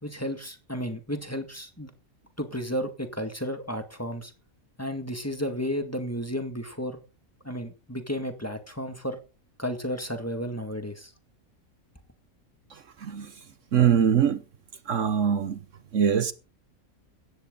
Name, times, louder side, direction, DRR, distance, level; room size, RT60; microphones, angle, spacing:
voice 1, 0.0-1.9 2.4-4.3 4.8-7.0 7.4-9.2 9.6-11.1, equal, 10° left, 1.9 m, -33 dB
voice 2, 13.7-14.4 14.9-15.6 15.9-16.3, right 8 dB, 65° right, 1.2 m, -22 dB
16.0 x 13.0 x 3.8 m
omnidirectional pair, 1.5 m